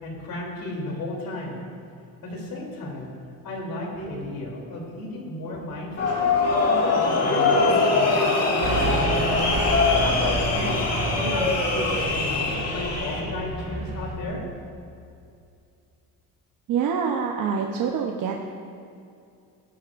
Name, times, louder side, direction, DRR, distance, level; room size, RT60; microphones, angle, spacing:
voice 1, 0.0-1.6 2.2-3.1 3.4-6.3 6.6-9.0 9.9-14.4, left 1 dB, 70° left, -1 dB, 3.2 m, -33 dB
sound 1, 6.0-13.2, left 3 dB, 45° left, 2.0 m, -22 dB
Car passing by / Truck, 8.6-14.2, right 2 dB, 45° right, 2.2 m, -30 dB
voice 2, 16.7-18.5, right 6 dB, 65° right, 1 dB, 0.9 m, -26 dB
19.5 x 11.5 x 2.5 m, 2.5 s
cardioid pair, 160°, 36 cm